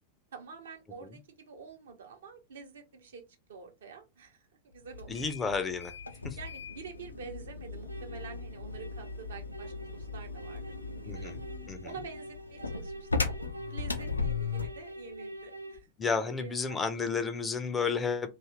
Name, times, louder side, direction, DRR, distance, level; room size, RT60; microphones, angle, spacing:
voice 1, 0.3-5.1 6.1-11.3 11.8-15.9 16.4-16.8, right 6 dB, 65° right, 0.7 m, -48 dB
sound 1, 4.9-14.8, left 4 dB, 80° left, 0.4 m, -37 dB
voice 2, 5.1-5.9 6.2-6.4 11.1-11.4 11.7-11.9 16.0-18.3, left 5 dB, 15° left, 0.4 m, -31 dB
sound 2, 7.9-15.8, right 1 dB, 90° right, 0.3 m, -46 dB
2.6 x 2.4 x 3.0 m
figure-of-eight pair, 90°, 0 cm